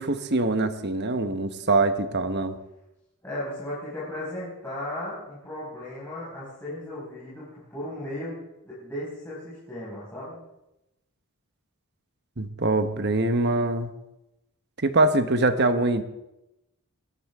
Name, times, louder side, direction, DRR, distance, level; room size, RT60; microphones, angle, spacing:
voice 1, 0.0-2.6 12.4-13.9 14.8-16.0, right 2 dB, 50° right, 9 dB, 1.1 m, -23 dB
voice 2, 3.2-10.4, left 1 dB, 10° left, -9 dB, 5.4 m, -36 dB
22.0 x 14.0 x 3.6 m, 0.91 s
head